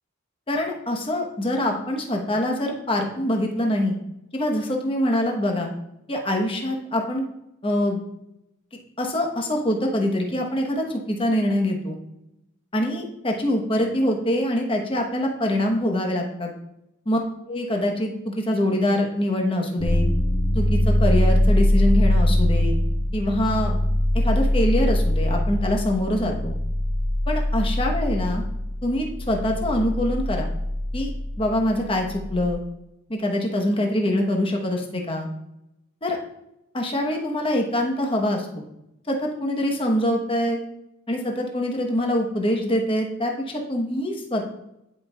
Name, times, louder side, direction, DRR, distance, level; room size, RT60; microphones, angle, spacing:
voice 1, 0.5-3.9 4.3-5.7 6.1-7.2 7.6-8.0 9.0-12.0 12.7-16.5 17.1-17.2 17.5-20.0 20.5-22.8 23.1-23.8 24.1-26.5 27.3-28.4 28.8-30.5 30.9-31.1 31.4-32.6 33.1-35.3 36.0-36.2 36.7-38.6 39.1-40.6 41.1-44.5, left 1 dB, 25° left, 1 dB, 1.0 m, -24 dB
sound 1, 19.8-32.5, left 1 dB, 85° left, 1.2 m, -22 dB
10.5 x 5.3 x 2.3 m, 0.86 s
head